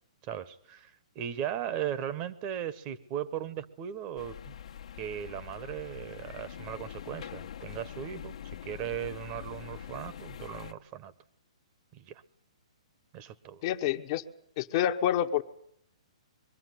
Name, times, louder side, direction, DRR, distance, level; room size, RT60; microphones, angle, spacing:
voice 1, 0.2-4.5 5.0-8.4 8.6-11.1 11.9-12.2 13.1-13.6, right 10 dB, 35° right, 14 dB, 1.1 m, -37 dB
sound 1, 4.2-10.7, left 9 dB, 65° left, 1.2 m, -44 dB
voice 2, 13.6-14.2 14.6-15.4, left 11 dB, 45° left, 8 dB, 1.1 m, -28 dB
22.5 x 13.5 x 9.6 m, 0.70 s
hypercardioid pair, 130°, 3 cm